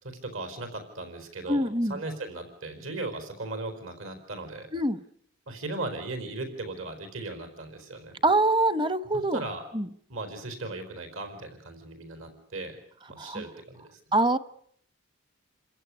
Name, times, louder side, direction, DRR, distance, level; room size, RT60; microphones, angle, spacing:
voice 1, 0.0-4.7 5.5-8.2 9.3-9.6 10.1-12.7 13.1-14.0, right 2 dB, 65° right, 8 dB, 4.7 m, -37 dB
voice 2, 1.5-2.0 4.7-5.0 8.2-9.4 9.7-9.9 13.2-13.4 14.1-14.4, right 2 dB, 20° right, 14 dB, 0.9 m, -24 dB
29.0 x 15.5 x 10.0 m, 0.67 s
head